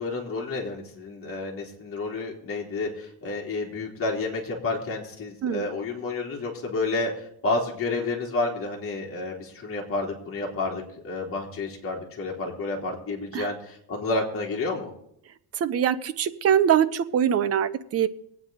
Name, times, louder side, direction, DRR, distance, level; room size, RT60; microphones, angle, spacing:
voice 1, 0.0-7.1 7.4-14.9, left 3 dB, 30° left, -2 dB, 3.3 m, -30 dB
voice 2, 15.6-18.1, right 9 dB, 35° right, 13 dB, 0.7 m, -23 dB
23.0 x 8.8 x 4.0 m, 0.72 s
cardioid pair, 150°, 42 cm